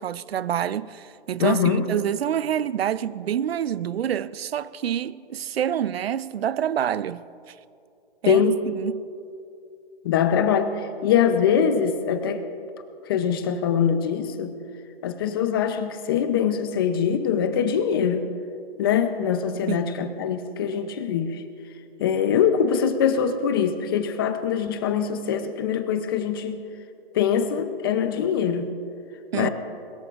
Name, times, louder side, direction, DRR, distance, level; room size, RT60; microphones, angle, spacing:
voice 1, 0.0-7.2 8.2-8.4 8.7-9.1 19.7-20.0 29.3-29.5, right 10 dB, 80° right, 0.6 m, -27 dB
voice 2, 1.4-1.8 8.3-8.6 10.0-12.4 13.1-14.5 15.0-18.3 18.8-21.4 22.0-26.6 27.1-28.7 29.3-29.5, left 7 dB, 25° left, 0.6 m, -23 dB
21.5 x 20.5 x 2.5 m
hypercardioid pair, 160°, 30 cm